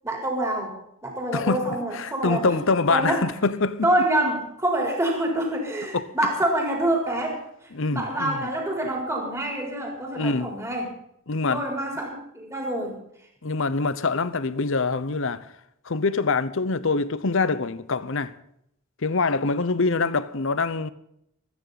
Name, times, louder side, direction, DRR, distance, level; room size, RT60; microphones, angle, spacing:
voice 1, 0.0-0.7 1.0-2.6 2.9-3.2 3.8-7.4 7.9-10.9 11.5-13.0, right 1 dB, 15° right, 4.1 m, -26 dB
voice 2, 1.3-3.9 5.9-6.1 7.7-8.5 10.2-10.5 11.3-11.6 13.4-15.5 15.8-18.3 19.0-20.9, left 3 dB, 60° left, 0.8 m, -25 dB
26.0 x 9.8 x 4.1 m
head